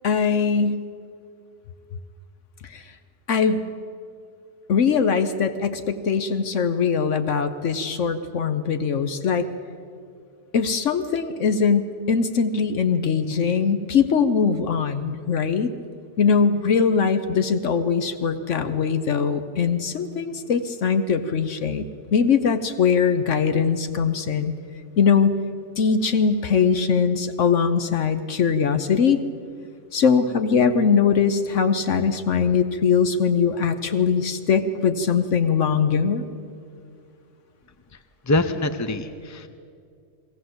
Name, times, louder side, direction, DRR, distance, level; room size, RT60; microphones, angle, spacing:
voice 1, 0.0-0.8 2.6-2.8 3.3-3.6 4.7-9.5 10.5-15.7 16.2-24.5 25.0-25.4 25.8-29.2 29.9-36.3, left 6 dB, 70° left, 10 dB, 1.2 m, -21 dB
voice 2, 38.3-39.5, left 2 dB, 25° left, 10 dB, 0.4 m, -24 dB
21.5 x 17.5 x 7.9 m, 2.4 s
omnidirectional pair, 1.3 m